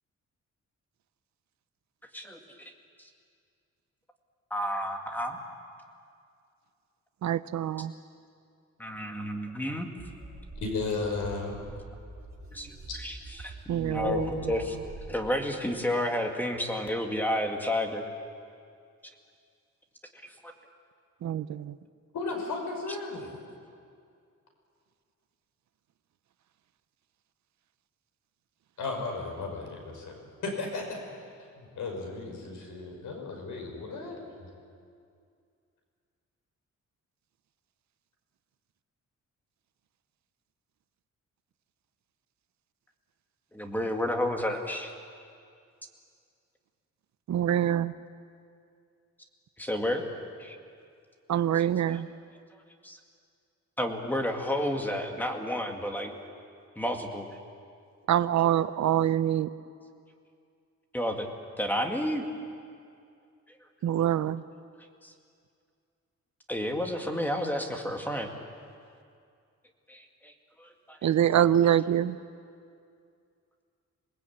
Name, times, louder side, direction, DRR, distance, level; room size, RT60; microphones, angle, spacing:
voice 1, 4.5-5.4 8.8-9.9 12.5-12.7 13.0-14.2 14.5-18.1 20.2-20.5 43.5-44.9 49.6-50.0 50.4-50.6 51.9-52.0 52.8-53.0 53.8-56.1 56.8-57.3 60.9-61.3 61.6-62.2 65.0-65.1 66.5-68.3 69.9-70.3 70.6-71.0, left 1 dB, 5° left, 3 dB, 2.0 m, -31 dB
voice 2, 7.2-7.9 13.7-14.3 21.2-21.8 47.3-47.9 51.3-52.1 58.1-59.5 63.8-64.4 71.0-72.2, right 10 dB, 65° right, 14 dB, 0.7 m, -25 dB
sound 1, 10.0-15.1, right 2 dB, 35° right, 4.8 m, -45 dB
voice 3, 10.6-11.6 12.9-13.0 14.0-14.7 22.1-23.3 28.8-30.2 30.4-31.0 31.6-34.5, left 3 dB, 80° left, 1 dB, 5.8 m, -34 dB
26.5 x 20.0 x 8.7 m, 2.3 s
wide cardioid pair, 160°, 30 cm